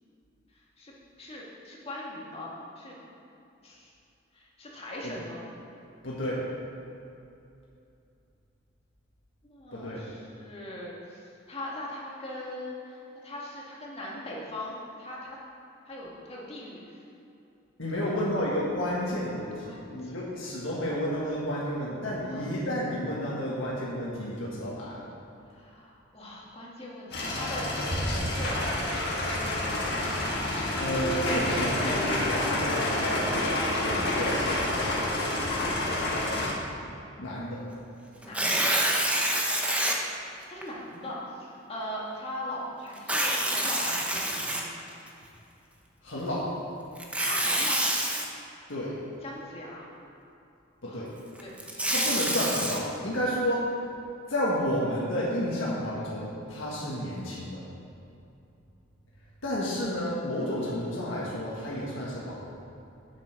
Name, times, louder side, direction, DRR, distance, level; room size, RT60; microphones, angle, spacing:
voice 1, 1.2-3.0 3.6-3.9 4.3-5.5 9.4-15.4 15.9-17.0 17.9-18.3 19.6-20.6 22.2-22.5 25.5-28.7 32.8-34.7 38.2-38.8 39.1-39.6 40.5-44.8 47.2-47.9 49.2-49.9 50.9-51.0 51.4-51.9, left 1 dB, 30° left, -5 dB, 1.9 m, -40 dB
voice 2, 6.0-6.4 9.7-10.0 17.8-25.1 30.8-33.1 34.1-34.3 37.2-37.6 46.0-46.5 48.7-49.0 50.8-51.1 51.9-53.7 54.3-57.6 59.4-62.4, equal, 85° left, -6 dB, 1.6 m, -31 dB
sound 1, 27.1-36.5, left 1 dB, 60° left, 1.7 m, -28 dB
Tearing, 38.2-40.0 40.6-40.7 43.0-45.1 47.0-48.3 51.4-52.8, right 1 dB, 5° right, 0.8 m, -27 dB
7.7 x 7.4 x 5.9 m, 2.7 s
head